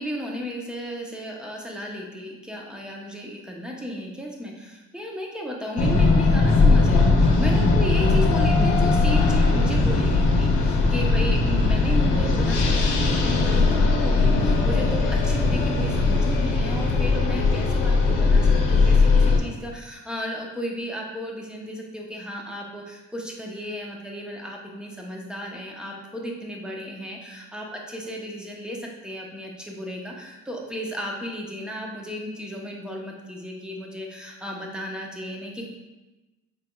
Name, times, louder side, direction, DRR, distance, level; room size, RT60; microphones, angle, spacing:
voice 1, 0.0-35.7, equal, 5° right, -1 dB, 0.7 m, -34 dB
sound 1, 5.8-19.4, left 3 dB, 85° left, 0.7 m, -19 dB
5.0 x 3.4 x 2.2 m, 1.1 s
cardioid pair, 90°, 30 cm